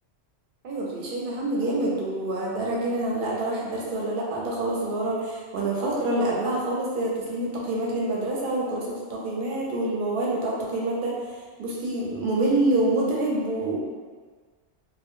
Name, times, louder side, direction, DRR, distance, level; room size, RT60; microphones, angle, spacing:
voice 1, 0.6-11.1 11.6-13.8, right 2 dB, 60° right, -3 dB, 0.6 m, -26 dB
2.1 x 2.0 x 2.9 m, 1.5 s
omnidirectional pair, 1.1 m